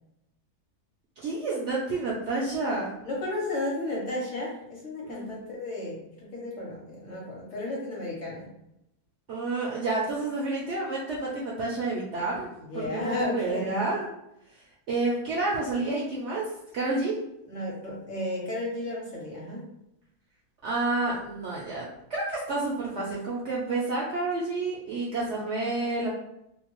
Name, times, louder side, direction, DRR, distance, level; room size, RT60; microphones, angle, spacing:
voice 1, 1.2-2.9 5.0-5.3 9.3-12.5 12.7-14.1 14.9-17.2 20.6-26.1, right 2 dB, 65° right, -5 dB, 0.7 m, -29 dB
voice 2, 3.0-8.5 12.7-13.9 17.5-19.6, left 1 dB, 60° left, -4 dB, 1.0 m, -33 dB
2.7 x 2.2 x 2.9 m, 0.82 s
omnidirectional pair, 1.7 m